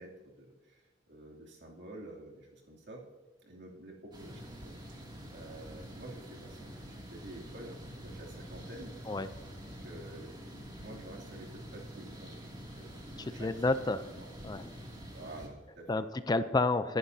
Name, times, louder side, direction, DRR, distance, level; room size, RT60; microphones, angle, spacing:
voice 1, 0.0-3.0 3.4-9.0 9.8-10.3 10.8-14.3 15.1-16.0, right 1 dB, 65° right, -2 dB, 2.8 m, -50 dB
sound 1, 4.1-15.5, equal, 25° right, 2.5 m, -47 dB
voice 2, 13.3-14.0 14.4-14.7 15.9-17.0, left 3 dB, 20° left, 11 dB, 0.5 m, -30 dB
23.0 x 11.0 x 2.8 m, 1.3 s
head